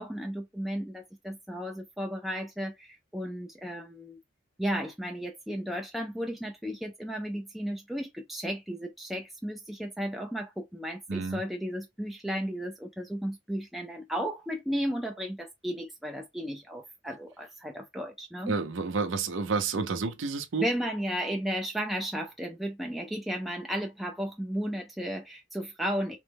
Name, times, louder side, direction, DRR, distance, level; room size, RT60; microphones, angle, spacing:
voice 1, 0.0-4.2 4.6-18.6 20.6-26.2, equal, ahead, 0.3 m, -34 dB
voice 2, 11.1-11.4 18.5-20.7, right 4 dB, 85° right, 0.6 m, -30 dB
3.1 x 2.2 x 3.3 m
head